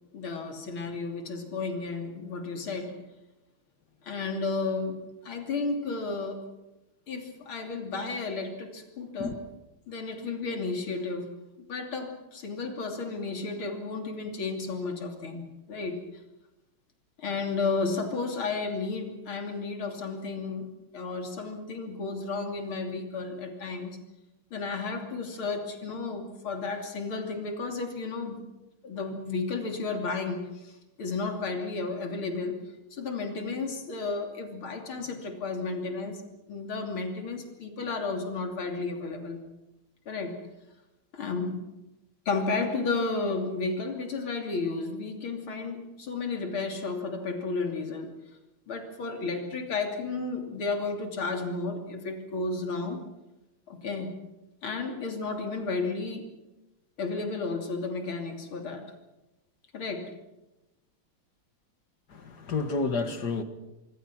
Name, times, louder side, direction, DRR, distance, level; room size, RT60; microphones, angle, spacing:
voice 1, 0.1-3.0 4.0-6.4 7.1-9.3 9.9-11.3 11.7-16.0 17.2-24.0 24.5-28.4 28.8-32.6 32.9-36.2 36.5-39.4 40.1-40.4 41.1-41.6 42.3-48.1 48.7-53.0 53.7-54.2 54.6-56.3 57.0-58.8 59.7-60.1, left 3 dB, 80° left, 3.8 m, -33 dB
voice 2, 62.1-63.4, left 3 dB, 55° left, 2.3 m, -30 dB
25.0 x 24.0 x 6.2 m
omnidirectional pair, 2.2 m